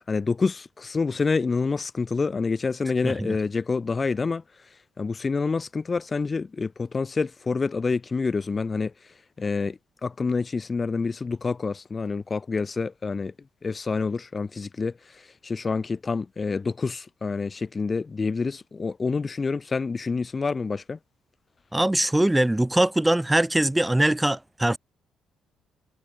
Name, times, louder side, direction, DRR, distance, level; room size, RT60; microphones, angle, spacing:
voice 1, 0.1-4.4 5.0-8.9 9.4-13.3 13.6-14.9 15.4-21.0, left 4 dB, 35° left, 0.8 m, -27 dB
voice 2, 3.0-3.4 21.7-24.8, right 1 dB, 10° right, 0.7 m, -22 dB
figure-of-eight pair, 45°, 0 cm